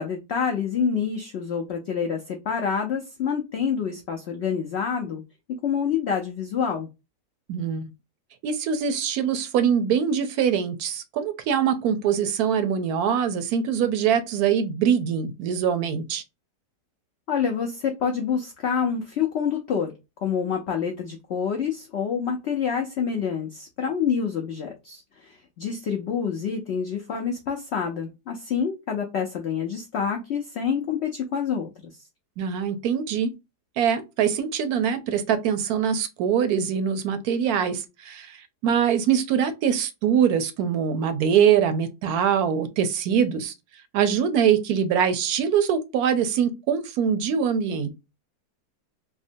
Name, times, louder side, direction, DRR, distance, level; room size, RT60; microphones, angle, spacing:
voice 1, 0.0-5.2 5.6-6.9 17.3-19.9 20.2-31.7, left 7 dB, 75° left, 0.6 m, -27 dB
voice 2, 7.5-7.9 8.4-16.2 32.4-33.3 33.8-43.5 43.9-47.9, right 8 dB, 75° right, 1.0 m, -23 dB
3.5 x 2.1 x 2.5 m
omnidirectional pair, 1.7 m